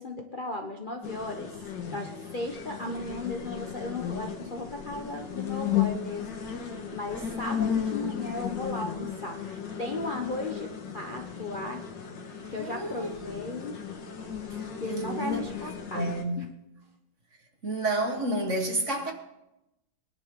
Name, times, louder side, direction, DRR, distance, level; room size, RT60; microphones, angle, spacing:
voice 1, 0.0-1.5 1.9-11.8 12.5-13.7 14.8-16.1 16.4-16.5, left 2 dB, 35° left, 0.9 m, -36 dB
sound 1, 1.0-16.2, left 8 dB, 60° left, 2.1 m, -35 dB
voice 2, 12.6-13.4 14.8-15.5 15.9-16.5 17.6-19.1, right 1 dB, 40° right, 1.7 m, -30 dB
23.0 x 10.5 x 3.8 m
omnidirectional pair, 2.3 m